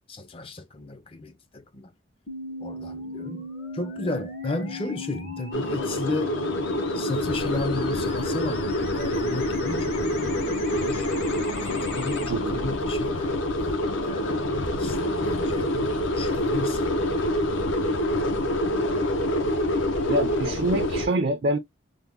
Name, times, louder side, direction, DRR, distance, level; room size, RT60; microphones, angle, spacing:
voice 1, 0.1-1.9 2.6-6.4 6.9-11.1 11.6-15.7 16.1-17.1, left 3 dB, 25° left, 0.5 m, -34 dB
sound 1, 2.3-12.3, left 2 dB, 50° left, 1.0 m, -37 dB
sound 2, 5.5-21.1, left 1 dB, 75° left, 0.8 m, -26 dB
voice 2, 20.0-21.6, right 1 dB, 50° right, 0.4 m, -25 dB
3.4 x 2.1 x 3.5 m
head